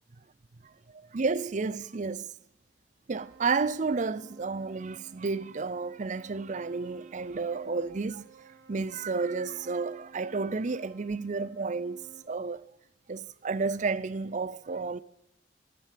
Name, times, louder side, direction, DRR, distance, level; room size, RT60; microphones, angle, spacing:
voice 1, 0.6-2.3 3.1-8.3 8.7-12.7 13.1-15.0, right 4 dB, 40° right, 0.5 m, -31 dB
sound 1, 3.1-12.2, right 4 dB, 70° right, 2.8 m, -55 dB
14.0 x 10.0 x 7.5 m
head